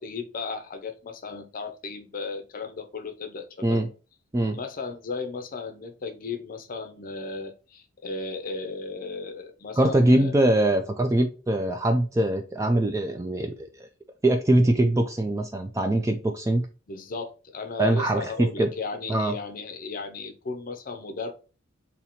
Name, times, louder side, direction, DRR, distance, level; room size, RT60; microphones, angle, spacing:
voice 1, 0.0-3.9 4.5-10.3 16.9-21.3, left 4 dB, 40° left, 0.6 m, -35 dB
voice 2, 9.8-13.9 14.2-16.7 17.8-18.7 19.1-19.3, right 1 dB, 15° right, 0.3 m, -22 dB
2.9 x 2.8 x 4.2 m
head